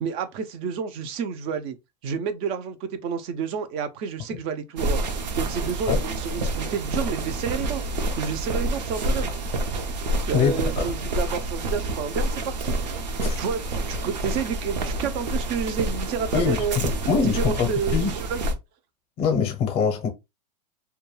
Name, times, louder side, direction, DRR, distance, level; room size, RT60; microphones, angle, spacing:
voice 1, 0.0-1.8 2.0-5.0 5.4-7.8 8.2-9.3 10.3-12.8 13.4-16.8 17.1-18.5, right 6 dB, 30° right, 0.3 m, -30 dB
sound 1, 4.8-18.5, right 1 dB, 85° right, 0.7 m, -28 dB
voice 2, 10.3-10.8 13.2-13.4 16.3-18.1 19.2-20.1, left 6 dB, 30° left, 0.6 m, -24 dB
2.2 x 2.2 x 3.0 m
supercardioid pair, 150°, 21 cm